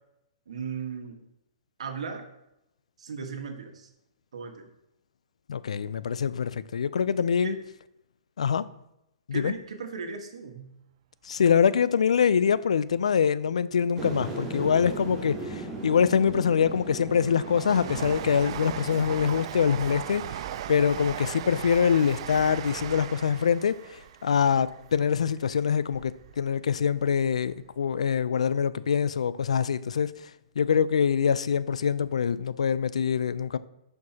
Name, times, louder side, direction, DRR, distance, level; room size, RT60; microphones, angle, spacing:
voice 1, 0.5-1.2 1.8-2.3 3.0-3.9 4.3-4.7 7.4-7.6 9.3-10.7, right 5 dB, 80° right, 1.3 m, -36 dB
voice 2, 5.5-7.6 8.4-8.7 9.3-9.5 11.2-20.4 20.7-30.1 30.6-33.6, left 7 dB, 85° left, 0.4 m, -24 dB
sound 1, 14.0-19.4, right 2 dB, 20° right, 2.7 m, -38 dB
Train, 16.6-26.3 26.7-27.7 27.9-28.0, right 10 dB, 55° right, 0.4 m, -38 dB
11.0 x 4.5 x 2.8 m
hypercardioid pair, 130°, 3 cm